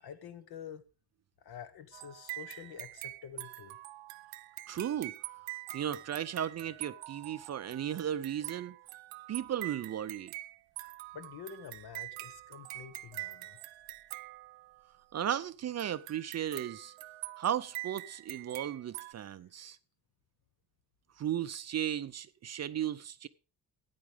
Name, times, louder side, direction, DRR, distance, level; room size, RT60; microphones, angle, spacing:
voice 1, 0.0-0.9 1.4-3.8 11.1-13.6, left 8 dB, 60° left, 1.4 m, -48 dB
sound 1, 1.9-15.0 15.8-19.1, right 18 dB, 90° right, 0.8 m, -45 dB
voice 2, 4.7-5.1 5.7-8.8 9.3-10.3 15.1-16.9 17.4-19.8 21.2-23.3, right 10 dB, 40° right, 0.5 m, -35 dB
14.0 x 9.4 x 3.4 m
cardioid pair, 130°, 43 cm